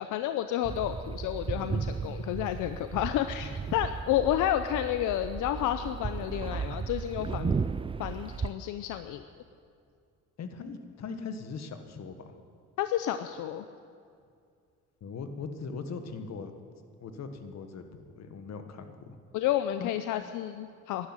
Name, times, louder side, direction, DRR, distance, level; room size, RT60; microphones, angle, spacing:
voice 1, 0.0-7.6 8.0-9.2 12.8-13.6 19.3-21.1, left 12 dB, 90° left, 10 dB, 0.6 m, -30 dB
sound 1, 0.6-8.5, right 5 dB, 20° right, 0.4 m, -35 dB
voice 2, 10.4-12.3 15.0-16.5 17.0-17.9 18.2-19.2 19.8-19.9, left 5 dB, 60° left, 8 dB, 1.6 m, -40 dB
12.0 x 11.5 x 9.7 m, 2.3 s
cardioid pair, 90°, 30 cm